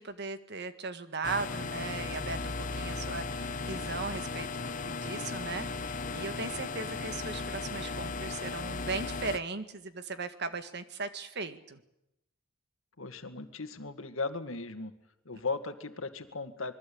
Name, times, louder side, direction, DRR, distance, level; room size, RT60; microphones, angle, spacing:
voice 1, 0.0-4.5 4.8-11.8, right 4 dB, 55° right, 10 dB, 1.8 m, -38 dB
sound 1, 1.2-9.4, left 3 dB, 40° left, 1.0 m, -36 dB
voice 2, 13.0-14.9 15.3-16.7, left 3 dB, 75° left, 8 dB, 2.0 m, -37 dB
26.0 x 22.0 x 8.7 m, 0.85 s
head